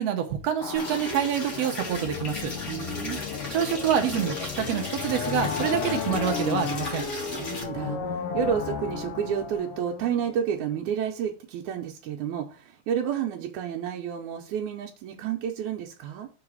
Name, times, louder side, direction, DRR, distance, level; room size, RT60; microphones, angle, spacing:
voice 1, 0.0-2.5 3.5-7.1, right 9 dB, 70° right, 6 dB, 1.7 m, -27 dB
sound 1, 0.6-10.6, left 6 dB, 75° left, 1.3 m, -33 dB
sound 2, 0.7-7.6, left 1 dB, 30° left, 1.4 m, -37 dB
voice 2, 2.7-3.2 7.4-16.3, right 8 dB, 85° right, 1 dB, 2.2 m, -30 dB
5.8 x 3.9 x 6.0 m, 0.35 s
omnidirectional pair, 3.4 m